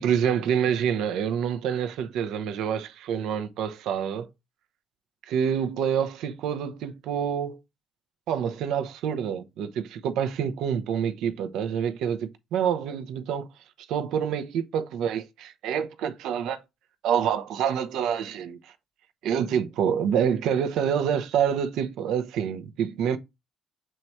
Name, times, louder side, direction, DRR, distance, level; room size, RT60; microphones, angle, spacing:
voice 1, 0.0-4.3 5.3-7.6 8.3-13.4 13.9-16.6 17.0-18.7 19.2-23.2, right 8 dB, 75° right, 0.8 m, -27 dB
7.6 x 3.2 x 4.2 m
hypercardioid pair, 55°, 0 cm